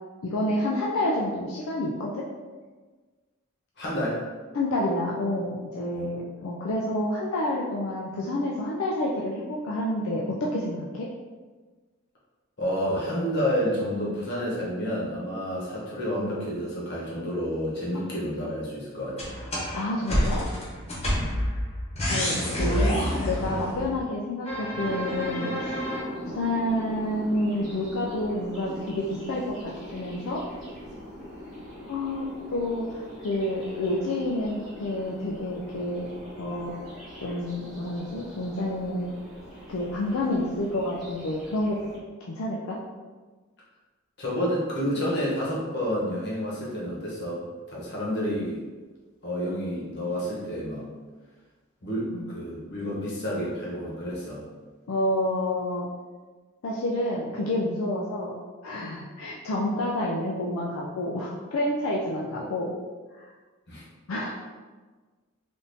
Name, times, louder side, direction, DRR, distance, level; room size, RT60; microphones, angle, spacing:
voice 1, 0.2-2.3 4.5-11.1 19.7-20.5 22.1-23.0 23.2-25.8 26.3-30.4 31.9-36.1 36.4-36.7 37.2-39.1 39.7-41.8 42.2-42.8 52.1-52.2 54.9-55.9 56.6-58.4 58.6-62.7 63.1-63.3 64.1-64.3, left 1 dB, 80° left, -4 dB, 0.4 m, -29 dB
voice 2, 3.8-4.3 5.9-6.0 12.6-19.4 21.1-21.3 44.2-48.6 49.2-50.9 51.8-54.4 63.7-63.8, equal, 55° left, -6 dB, 1.0 m, -29 dB
sound 1, 19.2-24.0 24.4-26.0, equal, 30° left, 0.9 m, -28 dB
sound 2, 24.7-42.0, equal, ahead, 1.0 m, -41 dB
3.5 x 2.6 x 2.6 m, 1.4 s
head